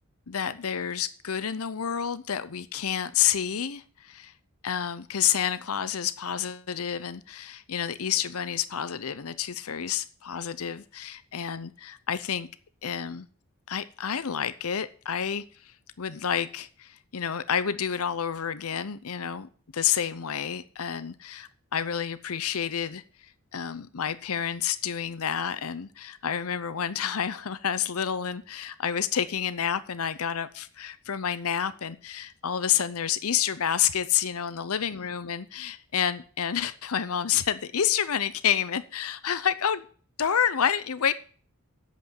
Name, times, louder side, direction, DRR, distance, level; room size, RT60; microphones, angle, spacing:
voice 1, 0.3-4.3 4.6-12.5 12.8-13.3 13.7-23.0 23.5-39.8 40.2-41.1, left 8 dB, 80° left, 15 dB, 0.7 m, -29 dB
8.4 x 8.0 x 9.1 m, 0.43 s
head